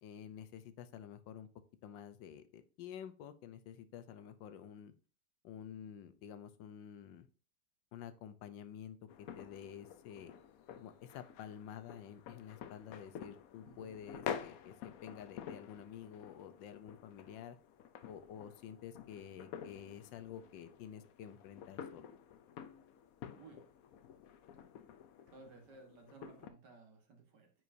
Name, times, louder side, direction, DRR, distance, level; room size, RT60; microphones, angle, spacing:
voice 1, 0.0-1.5 1.8-4.9 5.4-7.3 7.9-9.0 9.4-10.3 10.8-17.6 18.0-22.1, left 9 dB, 85° left, 11 dB, 1.4 m, -50 dB
sound 1, 9.1-26.5, left 8 dB, 65° left, 0.9 m, -49 dB
voice 2, 23.3-23.6 25.3-27.5, right 4 dB, 70° right, 3 dB, 2.2 m, -57 dB
9.3 x 4.7 x 2.7 m, 0.36 s
omnidirectional pair, 1.9 m